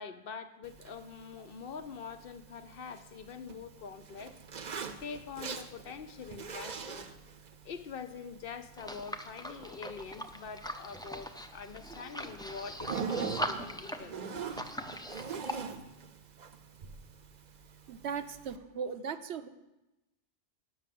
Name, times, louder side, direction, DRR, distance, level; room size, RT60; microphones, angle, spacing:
voice 1, 0.0-4.3 5.0-7.0 7.6-14.5, left 6 dB, 65° left, 10 dB, 0.8 m, -44 dB
Zipper (clothing), 0.6-18.6, right 6 dB, 50° right, 0.7 m, -44 dB
sound 1, 8.8-15.5, equal, 5° left, 0.3 m, -40 dB
voice 2, 17.9-19.5, right 6 dB, 85° right, 10 dB, 0.9 m, -38 dB
9.1 x 6.2 x 7.5 m, 0.97 s
omnidirectional pair, 1.1 m